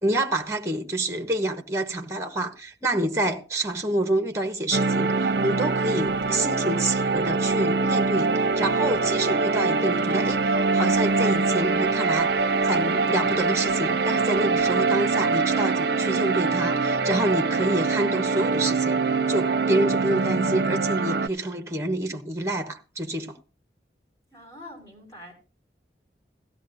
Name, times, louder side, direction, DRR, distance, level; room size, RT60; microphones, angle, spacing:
voice 1, 0.0-19.0 19.3-23.4, right 1 dB, 15° right, 1.1 m, -28 dB
sound 1, 4.7-21.3, right 4 dB, 60° right, 0.6 m, -23 dB
sound 2, 5.1-15.0, equal, 55° left, 2.5 m, -51 dB
voice 2, 24.3-25.3, left 1 dB, 20° left, 5.8 m, -44 dB
17.0 x 14.0 x 2.6 m
head